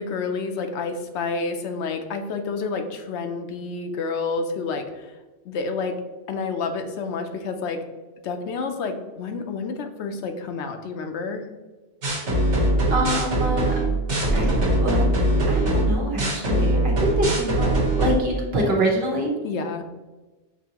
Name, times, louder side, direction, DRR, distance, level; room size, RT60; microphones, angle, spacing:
voice 1, 0.0-5.2 5.4-6.0 6.3-7.8 8.2-11.4 19.4-19.8, left 4 dB, 80° left, 6 dB, 0.9 m, -29 dB
sound 1, 12.0-18.1, right 1 dB, 90° right, 1.4 m, -21 dB
voice 2, 12.9-13.7 14.3-15.1 15.5-17.7 18.0-19.3, right 1 dB, 60° right, -1 dB, 1.2 m, -25 dB
6.1 x 2.7 x 2.8 m, 1.2 s
omnidirectional pair, 1.2 m